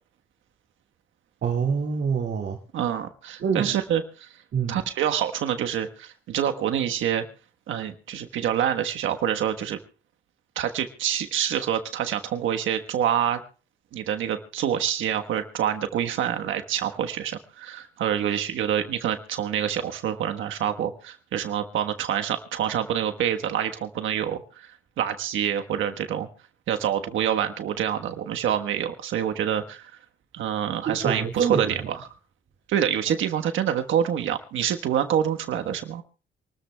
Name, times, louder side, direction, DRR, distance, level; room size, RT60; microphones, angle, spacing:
voice 1, 1.4-2.6 3.4-3.7 4.5-4.8 30.9-31.9, right 6 dB, 60° right, -1 dB, 2.3 m, -26 dB
voice 2, 2.7-4.3 4.7-7.2 7.7-9.8 10.6-13.4 13.9-24.7 25.0-26.3 26.7-29.9 30.3-32.0 32.7-36.0, right 9 dB, 80° right, 6 dB, 1.3 m, -26 dB
27.5 x 13.5 x 2.3 m, 0.36 s
cardioid pair, 90°, 20 cm